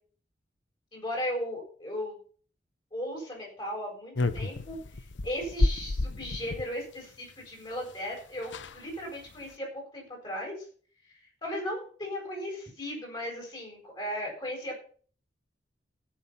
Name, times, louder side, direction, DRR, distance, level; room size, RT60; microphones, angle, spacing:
voice 1, 0.9-2.2 2.9-9.7 9.9-10.6 11.1-14.8, equal, 25° left, -1 dB, 7.6 m, -36 dB
sound 1, 4.1-6.7 7.9-8.0 8.2-8.3 8.4-8.8 9.3-9.5, left 2 dB, 90° left, 0.9 m, -30 dB
17.0 x 7.6 x 5.8 m, 0.43 s
head